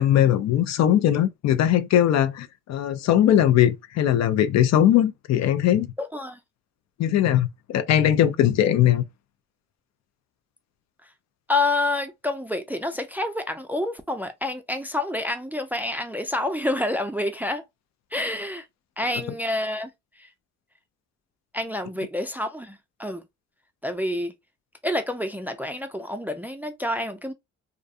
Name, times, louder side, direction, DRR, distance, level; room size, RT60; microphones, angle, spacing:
voice 1, 0.0-5.9 7.0-9.0, left 11 dB, 60° left, 0.4 m, -20 dB
voice 2, 6.0-6.4 11.5-17.6 18.1-18.7 19.0-19.9 20.2-20.3 21.5-23.2 23.8-24.3 24.8-27.3, left 2 dB, 5° right, 0.3 m, -28 dB
2.4 x 2.2 x 2.6 m
cardioid pair, 90°, 30 cm